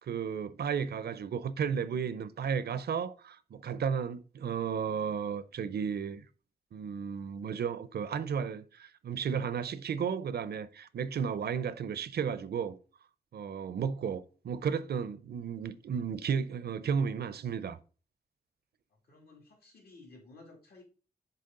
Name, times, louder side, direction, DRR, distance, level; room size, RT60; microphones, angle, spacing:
voice 1, 0.0-6.2 6.7-12.8 13.3-17.8, right 7 dB, 75° right, 0.5 m, -33 dB
voice 2, 18.9-20.8, left 3 dB, 75° left, 2.4 m, -55 dB
6.7 x 4.1 x 3.7 m
wide cardioid pair, 105°, 17 cm